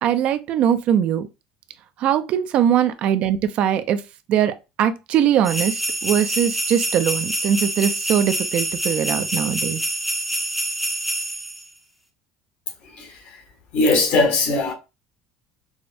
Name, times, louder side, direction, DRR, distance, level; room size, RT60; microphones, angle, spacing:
voice 1, 0.0-1.3 2.0-4.0 4.3-9.8, right 9 dB, 50° right, 0.4 m, -21 dB
sound 1, 5.4-11.6, right 1 dB, ahead, 0.6 m, -26 dB
voice 2, 13.7-14.7, left 3 dB, 60° left, 1.2 m, -19 dB
4.8 x 2.1 x 2.5 m
cardioid pair, 140°, 3 cm